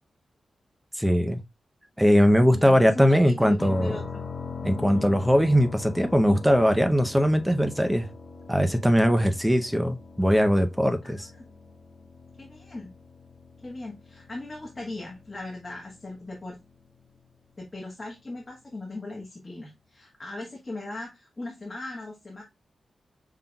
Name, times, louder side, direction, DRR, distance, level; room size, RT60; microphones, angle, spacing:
voice 1, 1.0-1.4 2.0-3.9 4.6-8.1 8.5-11.2, equal, 5° right, 0.6 m, -21 dB
voice 2, 2.5-4.2 4.8-5.0 11.4-11.5 12.4-12.9 13.6-16.6 17.6-22.4, left 2 dB, 20° left, 1.2 m, -38 dB
sound 1, 3.6-17.3, left 5 dB, 45° left, 0.9 m, -42 dB
5.6 x 3.7 x 2.3 m
wide cardioid pair, 165°, 0 cm